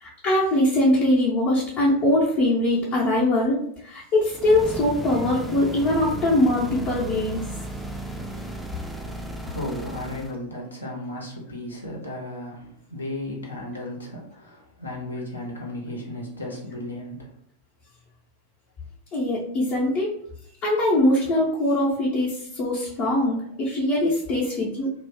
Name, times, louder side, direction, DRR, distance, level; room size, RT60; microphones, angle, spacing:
voice 1, 0.0-7.5 19.1-20.1 20.6-24.9, left 1 dB, 40° left, -6 dB, 0.6 m, -22 dB
sound 1, 4.3-10.4, right 2 dB, ahead, 0.3 m, -35 dB
voice 2, 9.4-17.3, left 1 dB, 75° left, -1 dB, 0.7 m, -34 dB
2.3 x 2.0 x 3.4 m, 0.70 s
figure-of-eight pair, 90°, 0 cm